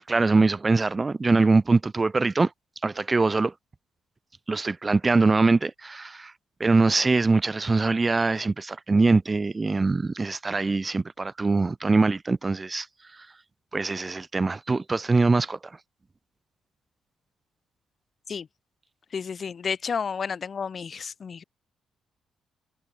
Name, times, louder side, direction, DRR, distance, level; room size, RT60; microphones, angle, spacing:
voice 1, 0.1-2.5 2.8-3.5 4.5-6.3 6.6-12.9 13.7-15.6, right 3 dB, 25° right, 0.4 m, -23 dB
voice 2, 19.1-21.4, left 6 dB, 45° left, 0.4 m, -31 dB
cardioid pair, 90°, 0 cm